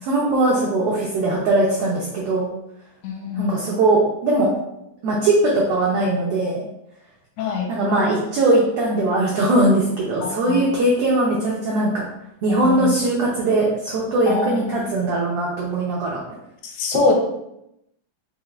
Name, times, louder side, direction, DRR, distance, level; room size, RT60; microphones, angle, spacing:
voice 1, 0.0-2.5 3.4-4.5 5.0-6.6 7.7-12.1 12.4-16.2, right 2 dB, 80° right, -4 dB, 1.3 m, -20 dB
voice 2, 3.0-3.6 7.4-7.7 10.2-10.6 12.5-12.9 14.3-14.9 16.6-17.1, left 4 dB, 85° left, 2 dB, 2.0 m, -24 dB
4.9 x 2.4 x 3.1 m, 0.82 s
omnidirectional pair, 3.4 m